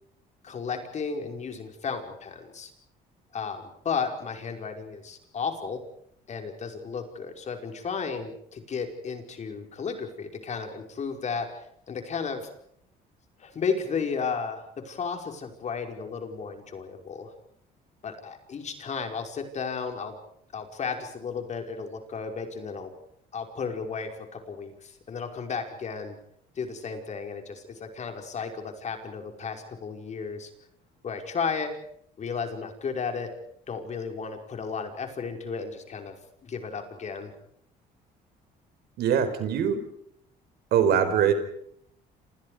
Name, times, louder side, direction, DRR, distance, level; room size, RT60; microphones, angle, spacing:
voice 1, 0.4-2.7 3.3-5.8 6.3-11.5 11.9-12.5 13.4-17.3 18.0-20.1 20.5-22.9 23.3-26.2 26.6-30.5 31.0-31.7 32.2-33.3 33.7-36.1 36.4-37.3, left 5 dB, 45° left, 4 dB, 5.3 m, -33 dB
voice 2, 39.0-39.8 40.7-41.3, right 8 dB, 70° right, 9 dB, 4.8 m, -22 dB
28.5 x 28.0 x 5.1 m, 0.70 s
cardioid pair, 110°, 17 cm